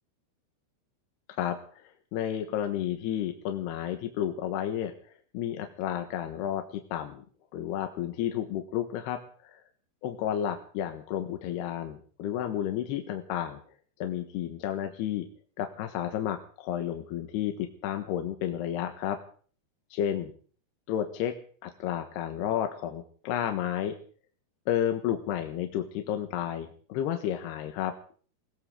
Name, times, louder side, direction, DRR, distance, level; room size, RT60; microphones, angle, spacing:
voice 1, 1.3-4.9 5.3-7.2 7.5-9.6 10.0-13.6 14.0-15.3 15.6-19.2 19.9-20.3 20.9-21.3 21.6-24.0 24.7-27.9, left 10 dB, 75° left, 5 dB, 3.3 m, -31 dB
21.5 x 18.0 x 3.8 m, 0.43 s
omnidirectional pair, 4.9 m